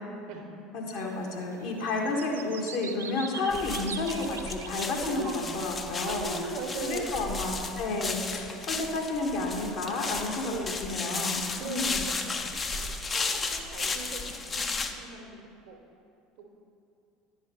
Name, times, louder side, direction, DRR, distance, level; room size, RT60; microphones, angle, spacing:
voice 1, 0.7-6.3 6.9-10.5 10.8-12.1, left 2 dB, 60° left, 0 dB, 1.2 m, -31 dB
sound 1, 0.9-1.1 1.4-5.9, right 5 dB, 85° right, 0.3 m, -43 dB
sound 2, 3.5-14.9, left 4 dB, 30° left, 0.5 m, -34 dB
voice 2, 5.0-5.5 6.0-7.4 8.7-8.9 10.4-10.9 11.6-15.3 15.7-15.8, right 4 dB, 65° right, 2 dB, 1.1 m, -39 dB
9.6 x 4.9 x 4.3 m, 2.5 s
figure-of-eight pair, 70°, 0 cm